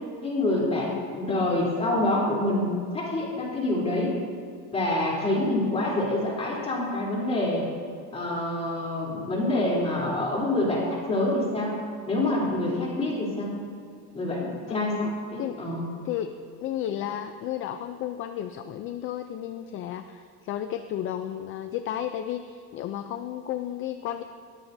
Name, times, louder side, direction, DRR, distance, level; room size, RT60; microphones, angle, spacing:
voice 1, 0.2-2.7 2.9-4.2 4.7-7.7 8.1-11.8 12.1-13.5 14.1-15.9, left 1 dB, 20° left, -4 dB, 3.4 m, -26 dB
voice 2, 0.8-1.1 12.7-12.9 14.7-15.1 15.4-15.6 16.0-16.3 16.6-24.2, left 11 dB, 40° left, 8 dB, 0.5 m, -33 dB
21.5 x 14.0 x 2.7 m, 2.3 s
cardioid pair, 165°, 34 cm